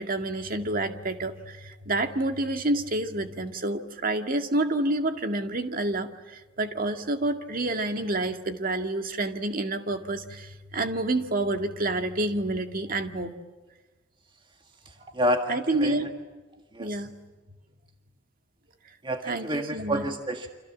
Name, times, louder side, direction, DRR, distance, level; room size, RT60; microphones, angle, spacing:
voice 1, 0.0-13.3 15.5-16.1 16.8-17.1 19.2-20.1, right 2 dB, 50° right, 6 dB, 2.1 m, -28 dB
voice 2, 15.2-15.5 15.8-15.9 16.8-16.9 19.0-20.5, equal, 25° right, 5 dB, 1.8 m, -28 dB
29.5 x 26.0 x 7.4 m, 1.3 s
head